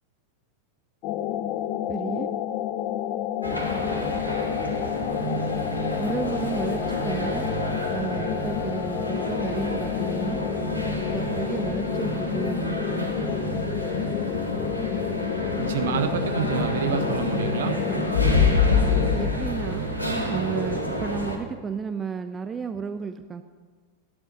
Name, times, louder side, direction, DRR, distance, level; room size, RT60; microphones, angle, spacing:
sound 1, 1.0-19.3, left 11 dB, 40° left, 0.6 m, -30 dB
voice 1, 1.9-2.3 6.0-7.5 7.9-10.4 11.1-13.1 17.9-18.4 19.1-19.9 20.3-23.4, right 6 dB, 20° right, 10 dB, 0.5 m, -33 dB
sound 2, 3.4-21.4, left 1 dB, 85° left, 2.1 m, -28 dB
voice 2, 15.7-17.7, right 7 dB, 60° right, 8 dB, 1.3 m, -27 dB
14.5 x 10.5 x 5.4 m, 1.4 s
figure-of-eight pair, 90°, 0 cm